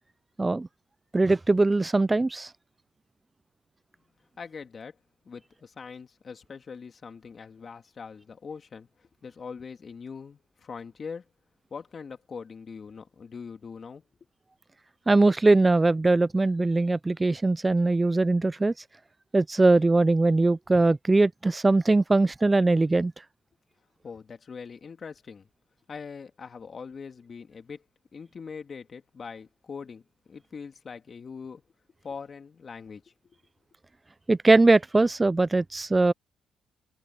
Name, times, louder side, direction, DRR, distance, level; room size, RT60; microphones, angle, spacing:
voice 1, 1.1-2.5 15.1-18.8 19.3-23.1 34.3-36.1, right 2 dB, 20° right, 0.3 m, -21 dB
voice 2, 4.4-5.0 5.2-11.3 11.7-14.0 24.0-25.5 25.9-27.8 28.1-31.6 32.0-33.4, left 5 dB, 40° left, 2.4 m, -42 dB
cardioid pair, 90°, 0 cm